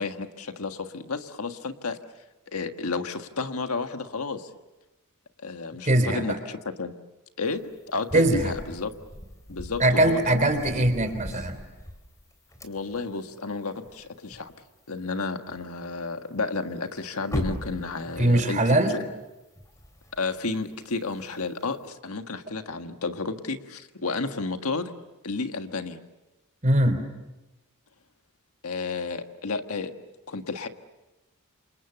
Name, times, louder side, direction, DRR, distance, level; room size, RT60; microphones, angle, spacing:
voice 1, 0.0-2.0 2.5-4.5 5.4-6.9 7.4-8.9 9.5-10.5 12.6-14.5 14.9-19.0 20.2-24.9 25.2-26.0 28.6-29.9 30.3-30.7, left 3 dB, 75° left, 7 dB, 1.6 m, -32 dB
voice 2, 5.8-6.4 8.1-8.5 9.8-11.6 18.2-18.9 26.6-27.0, right 1 dB, 35° right, 9 dB, 3.5 m, -21 dB
sound 1, 7.5-14.7 15.0-15.1 15.5-16.0 16.3-16.4 16.7-21.9, equal, 15° left, 3.5 m, -40 dB
29.0 x 26.5 x 7.1 m, 1.0 s
head